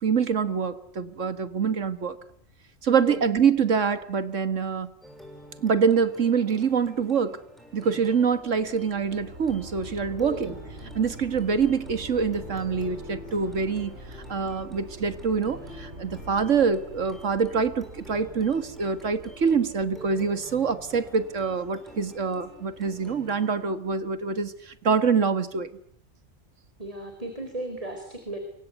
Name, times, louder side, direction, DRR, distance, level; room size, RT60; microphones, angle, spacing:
voice 1, 0.0-2.2 2.8-4.9 5.6-7.4 7.7-10.5 11.0-13.9 14.3-25.7, right 6 dB, 75° right, 12 dB, 2.0 m, -25 dB
sound 1, 5.0-23.6, equal, ahead, 7.4 m, -49 dB
sound 2, 8.2-23.2, right 1 dB, 55° right, 7.9 m, -45 dB
voice 2, 26.8-28.4, right 2 dB, 25° right, 5 dB, 4.5 m, -34 dB
28.0 x 24.0 x 8.2 m, 0.65 s
omnidirectional pair, 1.3 m